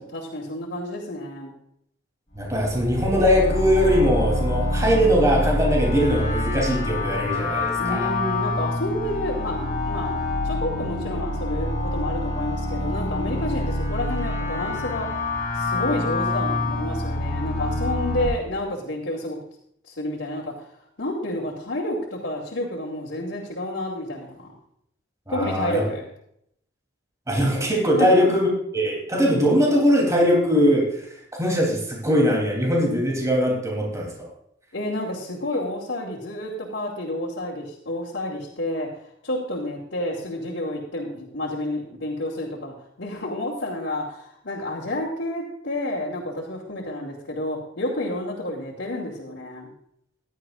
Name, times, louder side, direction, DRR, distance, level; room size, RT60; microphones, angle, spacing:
voice 1, 0.0-1.5 7.8-15.1 15.5-19.4 19.8-20.7 21.0-24.5 25.3-26.0 27.9-28.1 34.7-38.9 39.2-49.7, left 1 dB, 80° left, -6 dB, 2.6 m, -30 dB
sound 1, 2.4-18.3, left 1 dB, 40° left, 3.8 m, -26 dB
voice 2, 2.4-8.1 25.3-25.8 27.3-28.5 28.7-31.0 31.4-34.1, equal, 20° right, -2 dB, 3.5 m, -21 dB
16.0 x 12.0 x 2.6 m, 0.72 s
head